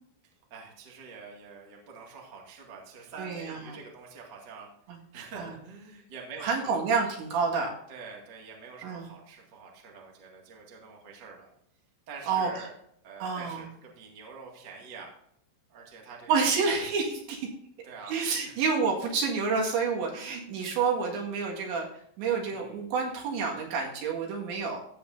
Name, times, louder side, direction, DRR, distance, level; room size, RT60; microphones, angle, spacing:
voice 1, 0.5-4.7 5.1-6.8 7.9-11.5 12.1-12.7 13.0-15.1 15.7-16.5 17.8-18.2 18.4-18.6 22.4-22.8 23.0-23.3, right 5 dB, 45° right, -1 dB, 1.4 m, -46 dB
voice 2, 3.2-3.8 5.4-5.5 6.4-7.7 8.8-9.0 12.3-12.5 13.2-13.7 16.3-17.5 18.1-21.9 22.2-24.8, right 5 dB, 70° right, -1 dB, 4.0 m, -28 dB
15.5 x 7.9 x 2.7 m, 0.69 s
omnidirectional pair, 5.7 m